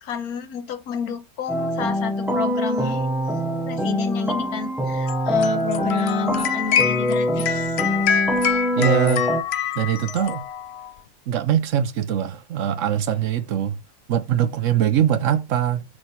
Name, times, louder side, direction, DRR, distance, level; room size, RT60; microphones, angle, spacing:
voice 1, 0.0-3.0 3.7-7.7, left 6 dB, 85° left, 1.4 m, -29 dB
sound 1, 1.5-9.4, equal, 5° right, 0.4 m, -24 dB
sound 2, 5.1-10.9, left 8 dB, 60° left, 0.7 m, -26 dB
voice 2, 8.7-9.3 9.8-10.5 11.3-13.8 14.1-15.8, right 10 dB, 65° right, 0.9 m, -22 dB
6.1 x 3.4 x 5.4 m
omnidirectional pair, 1.5 m